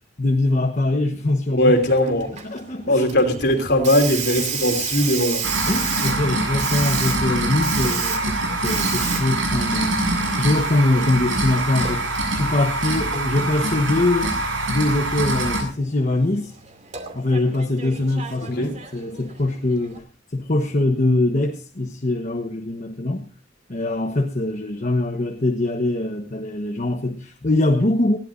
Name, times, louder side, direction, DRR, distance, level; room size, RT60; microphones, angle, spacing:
voice 1, 0.2-1.7 2.4-3.0 5.7-8.4 8.6-10.0 10.4-14.4 14.7-16.5 17.1-20.0 20.3-23.3 23.7-28.2, left 2 dB, 40° left, 3 dB, 1.2 m, -23 dB
voice 2, 1.5-2.3 2.9-5.5 18.4-18.7, left 1 dB, 60° left, 5 dB, 3.2 m, -19 dB
Hiss, 1.6-20.0, right 6 dB, 40° right, 2.6 m, -33 dB
sound 1, 5.4-15.6, right 2 dB, 85° right, 7.1 m, -24 dB
20.5 x 16.0 x 2.6 m, 0.35 s
head